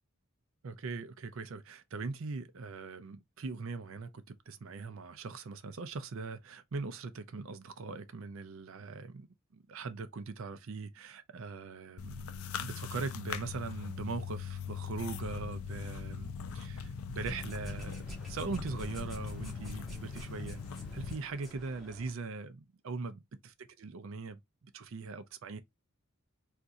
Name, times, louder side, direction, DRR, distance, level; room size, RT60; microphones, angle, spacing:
voice 1, 0.6-20.6 20.9-25.6, right 4 dB, 60° right, 0.5 m, -41 dB
sound 1, 12.0-21.1, left 6 dB, 75° left, 0.4 m, -41 dB
sound 2, 17.2-22.1, equal, ahead, 0.8 m, -49 dB
2.6 x 2.4 x 3.9 m
head